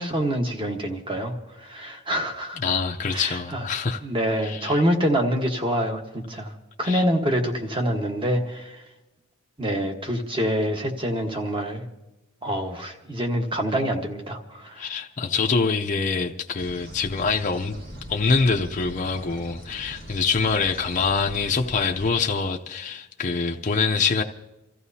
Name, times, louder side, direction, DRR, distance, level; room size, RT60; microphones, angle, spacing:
voice 1, 0.0-2.6 3.1-3.6 4.0-6.5 6.8-8.8 9.6-11.8 12.4-14.9, equal, 25° right, 1.3 m, -26 dB
voice 2, 2.6-4.0 4.4-4.8 6.8-7.0 14.7-17.8 18.1-24.2, left 4 dB, 35° left, 0.6 m, -25 dB
sound 1, 16.6-22.1, equal, 45° right, 1.8 m, -41 dB
29.0 x 14.5 x 2.8 m
head